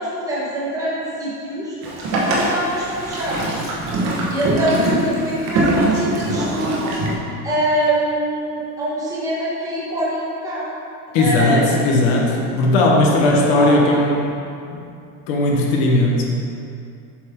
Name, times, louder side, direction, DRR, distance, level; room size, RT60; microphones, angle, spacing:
voice 1, 0.0-1.8 2.1-3.6 4.3-7.0 7.4-10.7 11.2-11.7 13.2-13.8, right 1 dB, 5° right, -8 dB, 1.1 m, -24 dB
Boat Water vehicle, 1.8-7.1, right 1 dB, 35° right, 1.1 m, -22 dB
voice 2, 11.1-14.3 14.7-14.8 15.3-16.2, left 2 dB, 45° left, -1 dB, 1.1 m, -17 dB
7.5 x 5.2 x 3.6 m, 2.5 s
supercardioid pair, 165°, 46 cm